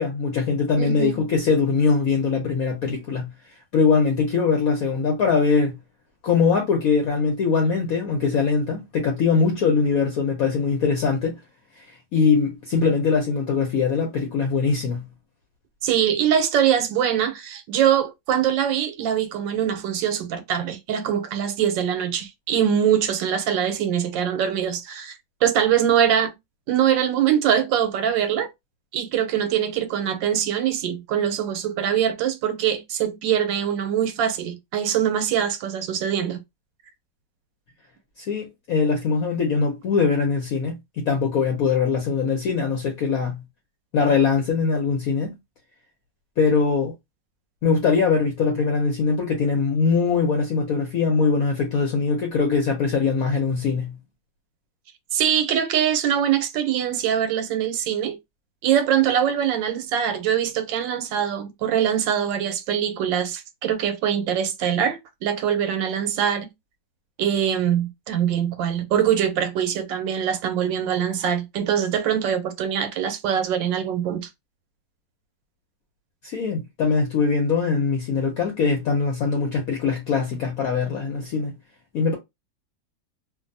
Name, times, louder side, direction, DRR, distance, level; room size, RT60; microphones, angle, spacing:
voice 1, 0.0-3.3 3.7-5.8 6.2-11.4 12.1-15.0 38.2-43.4 43.9-45.3 46.4-46.9 47.6-53.9 76.2-81.5 81.9-82.2, left 5 dB, 60° left, 1.0 m, -22 dB
voice 2, 0.8-1.3 15.8-26.3 26.7-28.5 28.9-36.4 55.1-58.2 58.6-66.5 67.2-74.3, right 9 dB, 90° right, 1.3 m, -23 dB
2.7 x 2.6 x 2.5 m
omnidirectional pair, 2.0 m